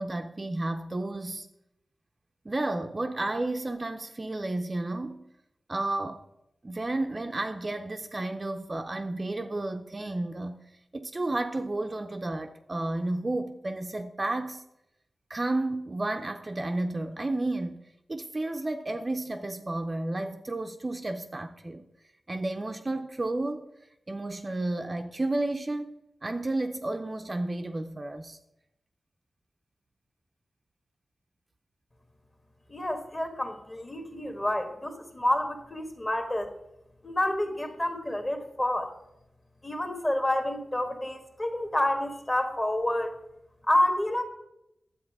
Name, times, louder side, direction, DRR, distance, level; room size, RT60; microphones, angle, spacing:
voice 1, 0.0-1.5 2.4-5.3 5.7-6.3 6.6-10.6 10.9-14.6 15.3-17.8 18.1-21.8 22.3-23.7 24.1-26.0 26.2-28.4, right 2 dB, 30° right, 0.5 m, -32 dB
voice 2, 32.7-36.5 37.0-38.9 39.6-43.2 43.7-44.2, left 1 dB, 25° left, 1.3 m, -28 dB
10.5 x 7.8 x 4.7 m
wide cardioid pair, 120°, 0 cm